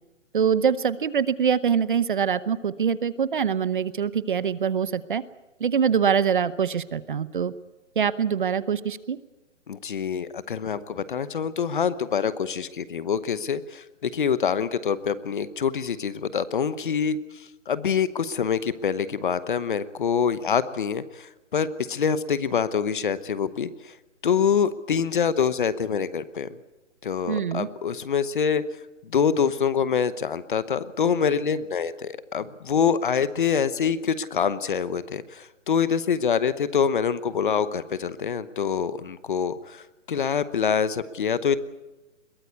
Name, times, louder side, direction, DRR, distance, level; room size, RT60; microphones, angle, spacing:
voice 1, 0.3-5.2 5.6-7.5 8.0-9.2 27.3-27.7, right 7 dB, 40° right, 16 dB, 0.8 m, -24 dB
voice 2, 9.7-23.9 24.2-26.5 27.0-28.6 29.0-41.6, left 7 dB, 40° left, 15 dB, 1.0 m, -25 dB
22.0 x 18.0 x 8.2 m, 1.1 s
hypercardioid pair, 165°, 38 cm